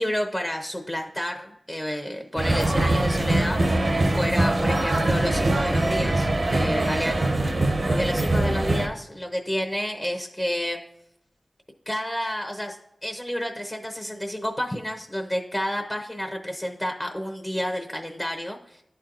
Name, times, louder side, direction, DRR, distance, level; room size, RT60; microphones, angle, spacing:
voice 1, 0.0-3.6 4.1-7.3 7.9-10.8 11.9-12.8 13.0-18.8, equal, 20° left, 4 dB, 0.8 m, -30 dB
sound 1, 2.4-8.9, right 2 dB, 55° right, 0.7 m, -23 dB
11.5 x 4.4 x 2.5 m, 0.78 s
wide cardioid pair, 60°, 0 cm